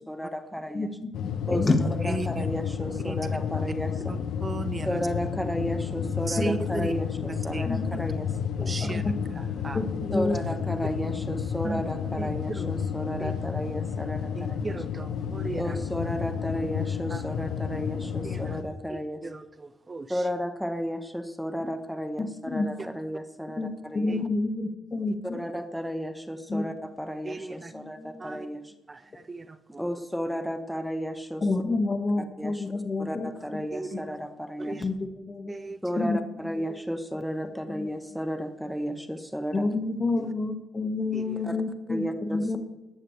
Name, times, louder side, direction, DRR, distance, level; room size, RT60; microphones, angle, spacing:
voice 1, 0.1-0.9 1.5-1.7 2.0-4.2 4.8-8.3 10.1-14.7 15.5-19.2 20.1-24.1 25.3-28.7 29.8-31.4 32.4-32.6 33.0-34.8 35.8-39.6 41.4-41.6 41.9-42.5, equal, ahead, 8 dB, 1.1 m, -33 dB
voice 2, 0.7-1.1 1.5-1.7 6.5-6.6 7.7-7.9 8.6-9.1 9.7-10.4 22.2-22.7 23.6-25.4 26.5-26.6 27.7-28.4 31.4-33.3 33.9-34.0 34.8-36.2 36.4-36.7 37.7-37.9 39.5-42.6, left 3 dB, 30° left, 6 dB, 1.7 m, -29 dB
sound 1, 1.1-18.6, left 7 dB, 75° left, 0.9 m, -31 dB
voice 3, 4.4-4.9 6.3-6.9 7.5-7.6 8.7-9.0 9.6-9.8 11.6-11.8 12.2-12.3 12.6-12.7 13.2-13.3 14.4-15.6 17.1-17.2 18.2-18.4 18.9-19.0 19.9-20.1 27.3-27.7 28.2-28.5 28.9-29.0 29.3-29.4 33.7-34.0 34.6-34.8 35.5-35.8 41.1-41.2, right 3 dB, 25° right, 12 dB, 0.5 m, -35 dB
15.5 x 11.5 x 3.3 m, 1.1 s
cardioid pair, 90°, 0 cm